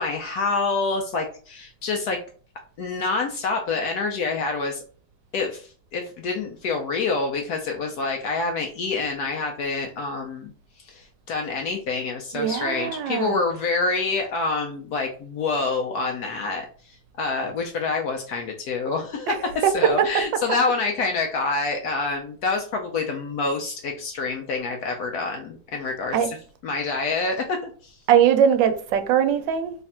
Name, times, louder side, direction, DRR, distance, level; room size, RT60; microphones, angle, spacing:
voice 1, 0.0-2.2 2.8-4.8 5.3-10.5 10.8-16.7 17.2-26.4 26.6-28.0, left 3 dB, 70° left, 1.0 m, -27 dB
voice 2, 12.3-13.4 19.3-19.4 19.6-19.7 26.1-26.3 28.1-29.7, right 9 dB, 90° right, 1.3 m, -20 dB
3.3 x 2.4 x 4.1 m
omnidirectional pair, 1.9 m